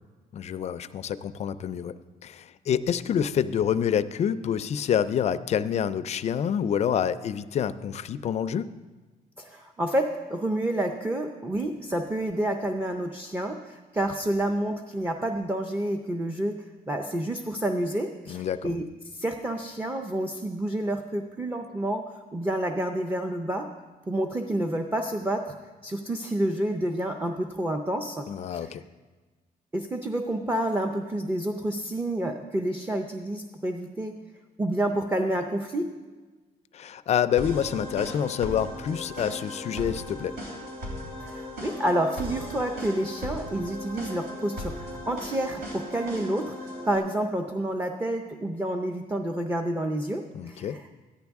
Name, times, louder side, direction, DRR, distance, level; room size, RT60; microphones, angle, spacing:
voice 1, 0.3-8.7 18.3-18.7 28.3-28.8 36.7-40.3 50.3-50.8, left 8 dB, 45° left, 13 dB, 0.4 m, -27 dB
voice 2, 9.4-22.0 22.3-23.7 24.1-25.5 25.8-28.7 29.7-34.2 34.6-35.9 41.2-50.8, right 1 dB, 15° right, 4 dB, 0.5 m, -29 dB
sound 1, 37.4-47.0, left 1 dB, 75° right, 3.5 m, -37 dB
14.5 x 10.5 x 3.5 m, 1.3 s
cardioid pair, 150°, 16 cm